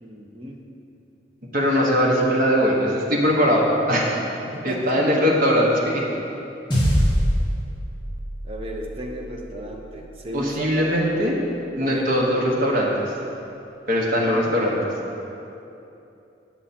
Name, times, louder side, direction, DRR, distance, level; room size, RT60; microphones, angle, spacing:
voice 1, 0.0-0.6 4.5-5.3 8.4-11.1 11.8-12.6 14.3-14.4, right 1 dB, 30° right, 0 dB, 0.8 m, -34 dB
voice 2, 1.5-4.2 4.6-6.0 10.3-11.3 11.8-13.1 13.9-14.8, equal, 50° right, -3 dB, 1.3 m, -20 dB
sound 1, 6.7-11.3, equal, 25° left, 1.4 m, -26 dB
9.2 x 6.4 x 4.3 m, 2.8 s
head